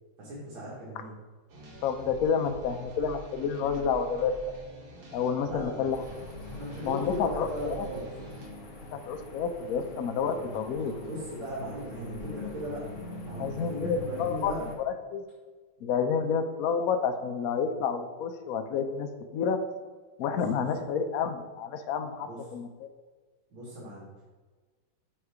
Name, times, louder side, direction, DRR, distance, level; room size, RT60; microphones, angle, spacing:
voice 1, 0.2-1.1 5.5-5.9 6.5-8.1 10.7-12.9 13.2-14.7 20.2-20.6 22.2-22.4 23.5-24.1, equal, 85° right, -7 dB, 2.4 m, -38 dB
sound 1, 1.5-8.5, right 1 dB, 55° right, 1.7 m, -46 dB
voice 2, 1.8-4.3 5.1-6.0 6.8-7.9 9.1-10.9 13.4-14.5 14.8-15.2 15.8-19.6 20.2-22.7, left 6 dB, 75° left, 7 dB, 0.8 m, -29 dB
sound 2, 5.9-14.7, left 2 dB, 45° left, 0.8 m, -43 dB
7.2 x 3.2 x 4.8 m, 1.4 s
omnidirectional pair, 2.2 m